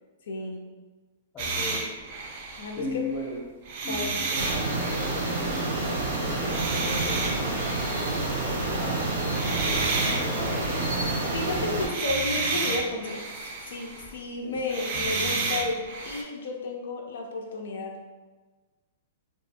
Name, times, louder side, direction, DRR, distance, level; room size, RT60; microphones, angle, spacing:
voice 1, 0.3-0.6 2.6-3.1 3.9-4.2 11.3-13.2 13.7-18.0, left 3 dB, 75° left, 1 dB, 0.4 m, -32 dB
voice 2, 1.3-1.8 2.8-3.4 3.8-5.1 5.4-5.8 6.2-6.5 6.8-7.7 8.4-10.6 14.4-14.6, left 2 dB, 20° left, -3 dB, 0.6 m, -38 dB
sound 1, 1.4-3.2 3.6-5.8 6.4-8.4 9.3-14.2 14.6-16.2, right 3 dB, 45° right, 0.4 m, -31 dB
sound 2, 4.4-11.9, right 2 dB, 85° right, 0.8 m, -28 dB
2.4 x 2.4 x 2.7 m, 1.3 s
hypercardioid pair, 155°, 0 cm